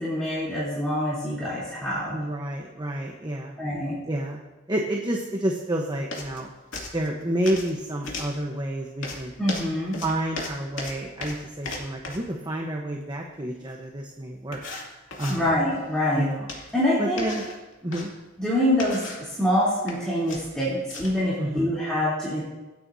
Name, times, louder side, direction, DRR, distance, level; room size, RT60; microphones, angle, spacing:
voice 1, 0.0-2.2 3.6-4.0 9.4-10.0 15.3-16.2 16.7-17.2 18.4-22.4, left 1 dB, 5° left, -11 dB, 3.4 m, -25 dB
voice 2, 2.1-3.6 4.1-4.4 4.7-6.5 6.9-9.3 10.0-14.6 15.2-15.5 16.1-16.5 17.0-17.4 17.8-18.1 21.4-21.8, right 1 dB, 25° right, 0 dB, 1.1 m, -29 dB
sound 1, 6.1-6.4 6.7-7.7 8.0-8.4 9.0-12.3 13.8-13.9 14.5-15.4 16.5-16.8 17.2-18.1 18.7-19.3 19.7-20.0 20.3-21.2, left 2 dB, 75° left, 2.7 m, -36 dB
26.0 x 9.1 x 2.8 m, 1.1 s
head